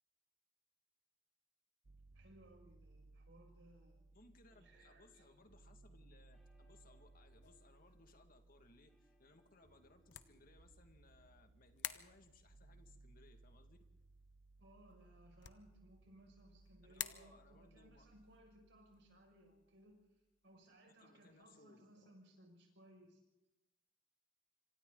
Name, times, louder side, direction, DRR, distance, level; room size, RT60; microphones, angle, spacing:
sound 1, 1.8-19.8, right 2 dB, 45° right, 0.7 m, -65 dB
voice 1, 2.1-4.0 4.5-5.5 14.6-19.9 20.4-23.2, right 1 dB, 65° right, 1 dB, 6.5 m, -64 dB
voice 2, 4.1-13.8 16.8-18.1 20.9-22.1, left 2 dB, 45° left, 6 dB, 2.2 m, -66 dB
sound 2, 4.5-10.9, equal, ahead, 3.0 m, -77 dB
sound 3, 7.4-21.6, left 12 dB, 65° left, 1.0 m, -55 dB
26.5 x 25.0 x 4.0 m, 0.97 s
head